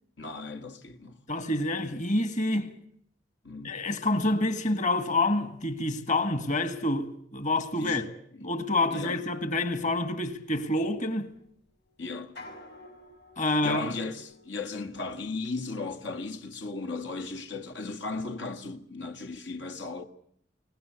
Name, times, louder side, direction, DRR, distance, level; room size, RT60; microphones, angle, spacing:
voice 1, 0.2-1.2 3.4-3.8 7.8-8.0 8.3-8.5 8.9-9.2 12.0-12.4 13.4-20.0, left 3 dB, 90° left, 1.8 m, -36 dB
voice 2, 1.3-2.7 3.6-8.1 8.4-11.3 13.4-13.8, left 2 dB, 45° left, 1.8 m, -27 dB
sound 1, 9.5-16.3, left 2 dB, 65° left, 6.2 m, -53 dB
23.0 x 19.0 x 8.3 m
head